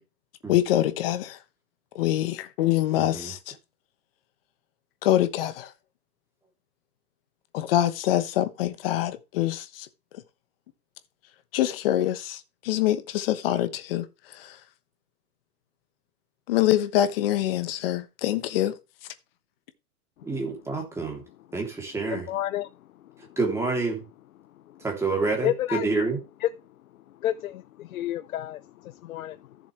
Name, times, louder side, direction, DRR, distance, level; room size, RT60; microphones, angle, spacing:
voice 1, 0.5-1.4 1.9-3.6 5.0-5.7 7.5-9.9 11.5-14.6 16.5-18.8, left 13 dB, 40° left, 1.2 m, -25 dB
voice 2, 3.0-3.3 20.2-21.2 21.5-22.3 23.4-24.0 24.8-26.2, right 3 dB, 5° right, 3.0 m, -28 dB
voice 3, 22.1-23.4 24.7-24.8 25.4-25.9 26.4-26.5 27.1-29.6, left 13 dB, 65° left, 0.8 m, -31 dB
14.0 x 7.3 x 3.3 m
hypercardioid pair, 160°, 45 cm